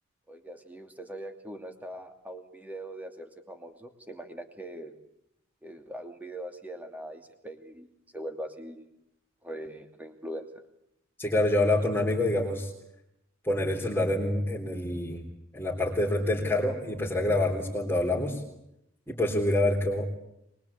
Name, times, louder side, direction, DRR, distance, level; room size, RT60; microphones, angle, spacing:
voice 1, 0.3-4.9 5.6-8.9 9.4-10.5, right 1 dB, 10° right, 6 dB, 2.6 m, -41 dB
voice 2, 11.2-12.7 13.4-15.2 15.5-18.4 19.1-20.1, left 1 dB, 10° left, -5 dB, 3.7 m, -26 dB
24.0 x 22.5 x 8.5 m, 0.82 s
head